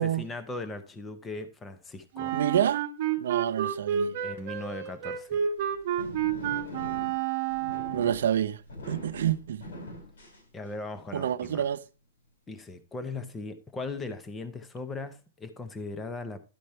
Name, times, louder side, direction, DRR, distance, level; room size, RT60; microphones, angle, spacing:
voice 1, 0.0-2.4 4.2-5.5 10.5-11.7 12.5-16.4, left 3 dB, 10° left, 0.6 m, -38 dB
Wind instrument woodwind instrument, 2.1-8.2, right 9 dB, 35° right, 1.0 m, -30 dB
voice 2, 2.3-2.8 3.2-4.2 7.9-8.6 8.9-9.6 11.1-11.8, right 10 dB, 60° right, 0.6 m, -28 dB
sound 1, 5.4-11.0, left 2 dB, 80° left, 5.3 m, -44 dB
11.5 x 5.1 x 4.3 m
hypercardioid pair, 180°, 0 cm